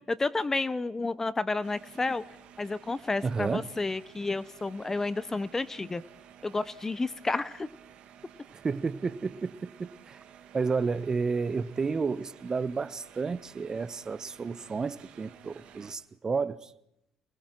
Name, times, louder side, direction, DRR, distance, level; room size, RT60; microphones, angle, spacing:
voice 1, 0.1-2.2 2.6-6.0 6.4-7.7, left 3 dB, 20° left, 0.8 m, -31 dB
sound 1, 1.6-16.0, right 9 dB, 60° right, 2.1 m, -53 dB
voice 2, 3.2-3.7 8.6-10.2 10.5-16.7, right 4 dB, 30° right, 0.9 m, -31 dB
30.0 x 20.5 x 4.6 m
supercardioid pair, 75°, 2 cm